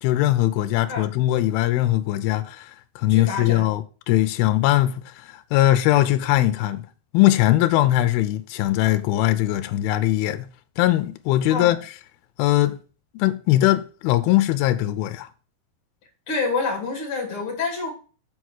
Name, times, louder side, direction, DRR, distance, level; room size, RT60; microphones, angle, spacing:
voice 1, 0.0-2.7 3.0-6.9 7.1-10.5 10.8-11.8 12.4-12.8 13.1-15.3, left 15 dB, 85° left, 2.5 m, -20 dB
voice 2, 3.1-3.7 11.5-11.8 16.3-17.9, left 4 dB, 40° left, 2.8 m, -27 dB
7.2 x 4.6 x 6.3 m
omnidirectional pair, 4.4 m